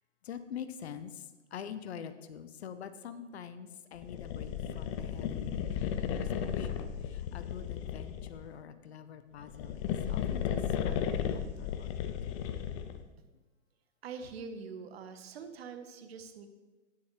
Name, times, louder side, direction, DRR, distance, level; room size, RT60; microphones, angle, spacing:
voice 1, 0.2-1.2 1.5-5.7 6.0-12.2, left 8 dB, 60° left, 11 dB, 0.8 m, -46 dB
sound 1, 4.0-8.5 9.4-13.1, left 9 dB, 25° left, 0.5 m, -34 dB
voice 2, 14.0-16.5, right 5 dB, 55° right, 8 dB, 1.1 m, -44 dB
9.9 x 9.6 x 3.1 m, 1.2 s
figure-of-eight pair, 115°, 37 cm